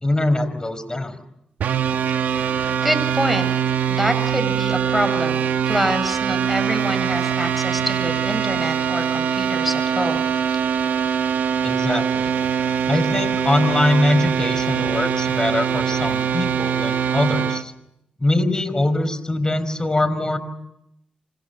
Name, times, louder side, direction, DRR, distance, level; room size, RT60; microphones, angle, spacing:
voice 1, 0.0-1.2 11.6-12.3 12.9-17.7 18.2-20.4, left 1 dB, 25° left, 14 dB, 5.1 m, -22 dB
sound 1, 1.6-17.6, right 8 dB, 85° right, 1.3 m, -22 dB
voice 2, 2.8-3.5 3.9-10.3, equal, ahead, 9 dB, 7.4 m, -26 dB
28.5 x 26.0 x 7.0 m, 0.82 s
supercardioid pair, 45°, 3 cm